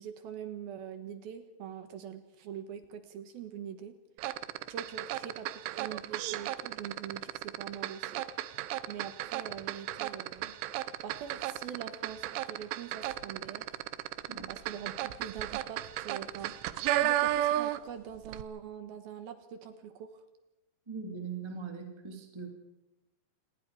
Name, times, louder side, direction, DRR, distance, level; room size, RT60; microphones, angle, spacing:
voice 1, 0.0-3.9 4.7-8.3 8.9-10.5 11.0-13.7 14.5-20.2, right 8 dB, 65° right, 8 dB, 2.6 m, -43 dB
sound 1, 4.2-18.0 18.2-18.4, right 14 dB, 80° right, 3.2 m, -34 dB
voice 2, 20.9-22.5, right 5 dB, 15° right, 3 dB, 0.9 m, -40 dB
28.0 x 20.5 x 4.8 m, 0.98 s
omnidirectional pair, 5.6 m